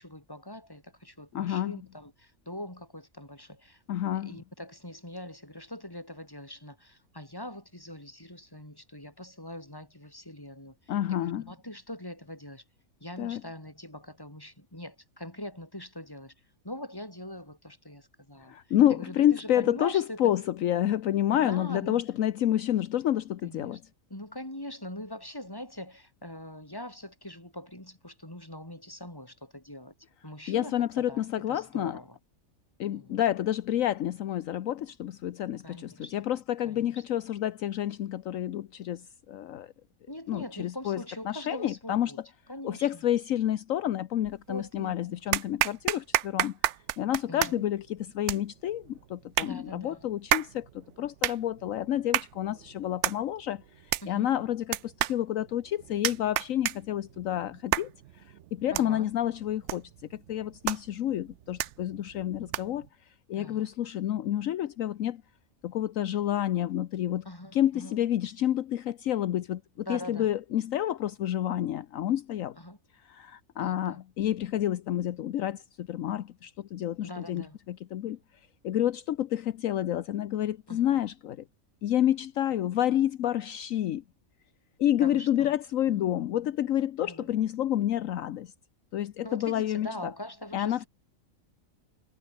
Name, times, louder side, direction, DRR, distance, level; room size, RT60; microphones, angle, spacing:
voice 1, 0.0-3.8 4.1-12.6 13.0-16.3 16.6-20.3 21.3-22.0 23.4-23.8 24.1-29.9 30.2-32.2 32.9-33.2 35.6-36.1 36.6-37.0 40.1-42.2 42.5-43.0 44.5-45.2 47.3-47.7 49.4-50.0 54.0-54.3 58.7-59.1 63.3-63.7 67.2-68.0 69.8-70.3 72.5-72.8 73.6-74.0 77.0-77.6 80.7-80.8 85.0-85.5 85.9-86.1 87.0-87.5 89.2-90.9, left 1 dB, 15° left, 4.9 m, -42 dB
voice 2, 1.3-1.8 3.9-4.4 10.9-11.4 13.2-13.4 18.4-23.8 30.5-32.0 32.8-39.7 40.3-42.1 42.6-46.6 47.0-57.9 58.2-62.9 63.3-65.2 65.6-67.2 67.5-72.6 73.1-78.2 78.6-81.4 81.8-84.0 84.8-88.5 88.9-89.9 90.5-90.8, left 11 dB, 70° left, 1.1 m, -29 dB
sound 1, 44.2-44.8 45.3-62.9, right 12 dB, 65° right, 0.9 m, -33 dB
omnidirectional pair, 1.5 m